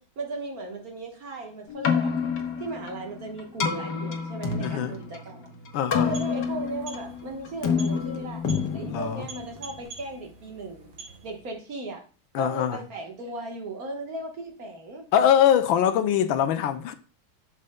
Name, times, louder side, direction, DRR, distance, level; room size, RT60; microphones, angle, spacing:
voice 1, 0.0-2.2 2.6-5.4 5.9-8.4 8.7-10.9 11.2-12.0 12.3-15.1, right 2 dB, 50° right, 1.6 m, -36 dB
Keyboard (musical), 1.7-9.8, left 6 dB, 65° left, 1.6 m, -29 dB
voice 2, 4.6-4.9 5.7-6.1 8.8-9.3 12.3-12.8 15.1-16.9, left 9 dB, 85° left, 1.4 m, -23 dB
sound 1, 5.8-11.6, right 4 dB, 80° right, 2.3 m, -46 dB
11.0 x 6.6 x 2.2 m
omnidirectional pair, 2.1 m